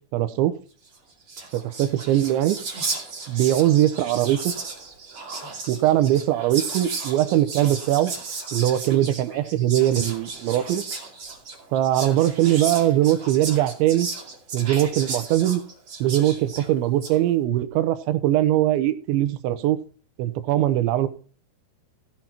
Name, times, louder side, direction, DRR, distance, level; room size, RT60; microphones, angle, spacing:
voice 1, 0.1-0.5 1.5-2.6 3.3-4.5 5.7-8.1 8.5-10.8 11.7-14.1 14.5-15.6 16.0-19.8 20.2-21.1, right 13 dB, 90° right, 12 dB, 3.3 m, -21 dB
Whispering, 0.9-1.0 1.2-17.2, right 4 dB, 35° right, 2.6 m, -34 dB
16.0 x 7.7 x 4.3 m, 0.39 s
omnidirectional pair, 5.1 m